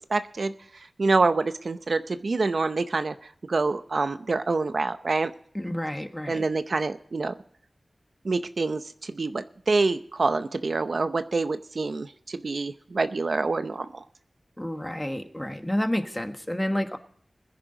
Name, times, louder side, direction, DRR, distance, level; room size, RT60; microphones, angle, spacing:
voice 1, 0.1-0.5 1.0-3.1 3.5-5.3 6.3-7.3 8.2-14.0, right 3 dB, 70° right, 11 dB, 0.7 m, -26 dB
voice 2, 5.5-6.4 14.6-17.0, left 1 dB, 10° left, 7 dB, 1.3 m, -29 dB
21.0 x 10.5 x 3.9 m, 0.63 s
wide cardioid pair, 70°, 0 cm